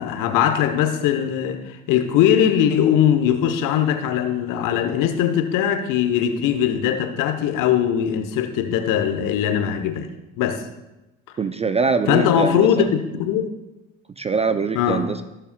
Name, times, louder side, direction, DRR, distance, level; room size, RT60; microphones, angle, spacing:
voice 1, 0.0-10.1 10.4-10.6 12.1-13.5 14.7-15.1, left 9 dB, 60° left, 7 dB, 1.1 m, -20 dB
voice 2, 11.4-12.9 14.2-15.2, right 5 dB, 20° right, 11 dB, 0.4 m, -23 dB
17.5 x 6.8 x 2.3 m, 0.98 s
hypercardioid pair, 60°, 37 cm